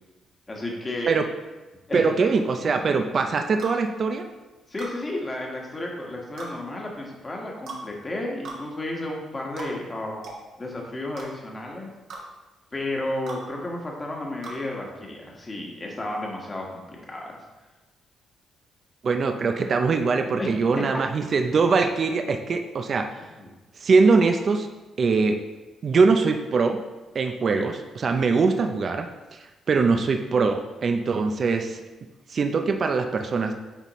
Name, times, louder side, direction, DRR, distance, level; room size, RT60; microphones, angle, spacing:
voice 1, 0.5-1.1 1.9-2.1 2.6-3.0 4.7-10.2 10.6-11.9 12.7-17.4 20.3-20.5 23.1-23.5 27.5-27.7, left 1 dB, 25° left, -1 dB, 1.5 m, -33 dB
voice 2, 1.9-4.2 19.0-23.1 23.8-24.7 25.0-25.4 25.8-26.8 27.1-31.8 32.3-33.5, right 4 dB, 45° right, 5 dB, 0.5 m, -22 dB
sound 1, 3.6-3.8 4.8-5.0 6.4-6.5 7.7-7.8 8.4-8.6 9.6-9.7 10.2-10.4 11.2-11.3 12.1-12.2 13.3-13.4 14.4-14.6, right 3 dB, 70° right, 1.4 m, -37 dB
9.0 x 4.2 x 3.1 m, 1.2 s
cardioid pair, 90°, 0 cm